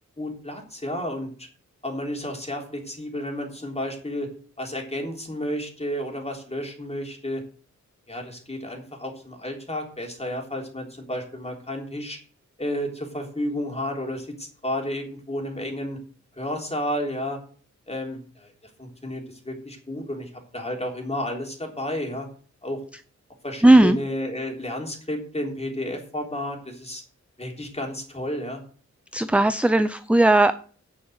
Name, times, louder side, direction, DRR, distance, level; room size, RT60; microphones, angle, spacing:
voice 1, 0.2-1.5 1.8-4.3 4.6-7.4 8.1-12.2 12.6-16.0 16.4-17.4 17.9-18.5 18.8-22.3 22.6-22.8 23.4-27.0 27.4-28.6, left 1 dB, 20° left, 2 dB, 3.6 m, -31 dB
voice 2, 23.6-24.0 29.1-30.5, right 1 dB, 5° right, 12 dB, 0.5 m, -16 dB
9.7 x 6.4 x 8.0 m, 0.43 s
wide cardioid pair, 85°, 30 cm